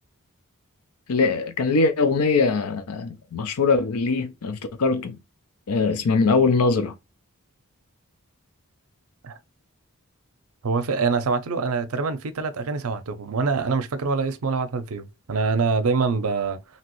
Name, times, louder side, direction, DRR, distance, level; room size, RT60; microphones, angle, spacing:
voice 1, 1.1-5.2 5.7-6.9, left 4 dB, 85° left, 0.5 m, -22 dB
voice 2, 10.6-16.6, right 4 dB, 70° right, 0.5 m, -25 dB
2.9 x 2.8 x 3.0 m
head